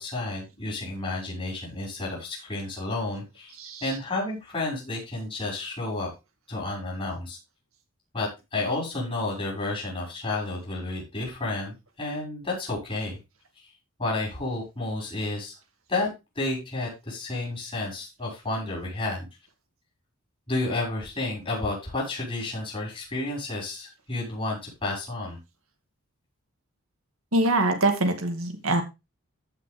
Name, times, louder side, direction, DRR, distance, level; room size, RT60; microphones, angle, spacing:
voice 1, 0.0-3.5 3.8-6.1 6.5-7.4 8.1-13.2 14.0-15.5 15.9-16.1 16.4-19.3 20.5-25.4, left 2 dB, 25° left, -3 dB, 5.7 m, -31 dB
voice 2, 3.6-3.9 27.3-28.8, right 2 dB, 65° right, 6 dB, 2.2 m, -24 dB
15.0 x 6.0 x 3.5 m, 0.25 s
head